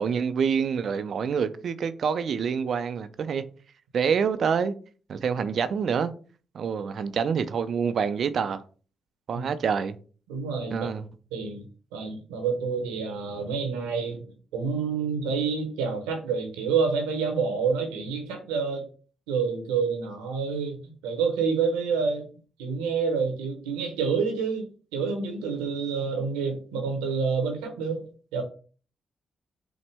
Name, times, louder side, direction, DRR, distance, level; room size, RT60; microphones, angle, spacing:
voice 1, 0.0-3.4 3.9-4.7 5.1-6.1 6.5-8.6 9.3-10.0 10.7-11.1, right 6 dB, 65° right, 0.5 m, -26 dB
voice 2, 10.3-10.9 11.3-11.7 11.9-14.2 14.5-18.9 19.3-20.8 21.0-22.3 22.6-24.7 24.9-28.1 28.3-28.4, right 5 dB, 90° right, 0.9 m, -28 dB
6.0 x 2.1 x 3.4 m
hypercardioid pair, 50°, 0 cm